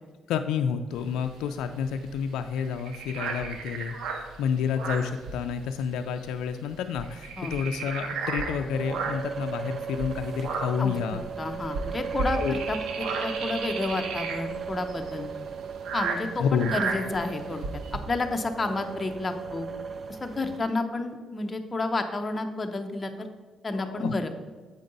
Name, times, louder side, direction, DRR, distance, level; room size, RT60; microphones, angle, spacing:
voice 1, 0.3-4.0 4.4-11.2 12.4-12.6 16.4-16.7 23.7-24.1, left 7 dB, 90° left, 7 dB, 0.3 m, -29 dB
sound 1, 0.9-5.9 6.2-6.4 6.7-9.4 9.9-18.0, right 4 dB, 80° right, 0.9 m, -34 dB
sound 2, 8.7-20.6, right 6 dB, 45° right, 0.3 m, -37 dB
voice 2, 10.8-15.3 15.9-17.6 17.9-19.7 20.1-23.3 23.6-24.3, left 2 dB, 25° left, 5 dB, 0.7 m, -31 dB
7.7 x 5.2 x 3.9 m, 1.4 s
cardioid pair, 90°, 0 cm